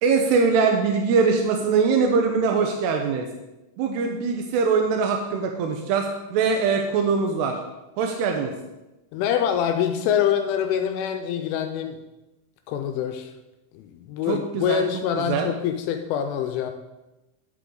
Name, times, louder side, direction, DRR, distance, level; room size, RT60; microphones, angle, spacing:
voice 1, 0.0-3.3 3.8-7.6 8.0-8.5 14.3-14.8 15.3-15.5, right 5 dB, 80° right, 3 dB, 2.4 m, -22 dB
voice 2, 9.1-12.0 12.7-13.3 13.7-16.7, left 9 dB, 85° left, 6 dB, 3.0 m, -25 dB
11.0 x 8.3 x 3.9 m, 1.0 s
omnidirectional pair, 5.8 m